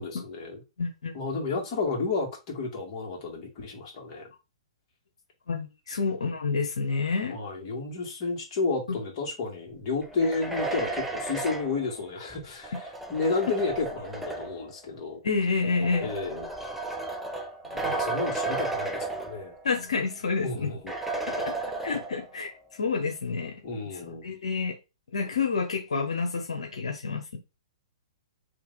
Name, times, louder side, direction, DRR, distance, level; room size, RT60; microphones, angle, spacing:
voice 1, 0.0-0.6 1.1-4.3 7.3-15.2 16.0-16.5 17.7-19.6 20.4-20.9 23.6-24.3, left 3 dB, 40° left, 1.9 m, -31 dB
voice 2, 0.8-1.1 5.5-7.4 15.2-16.1 17.8-17.9 19.6-20.7 21.3-21.5 21.8-23.5 23.8-24.8 25.1-27.4, left 4 dB, 80° left, 1.0 m, -29 dB
sound 1, 10.0-14.7 15.6-19.8 20.1-20.2 20.9-22.4, right 2 dB, 5° right, 0.7 m, -33 dB
3.2 x 3.2 x 4.0 m
hypercardioid pair, 125°, 3 cm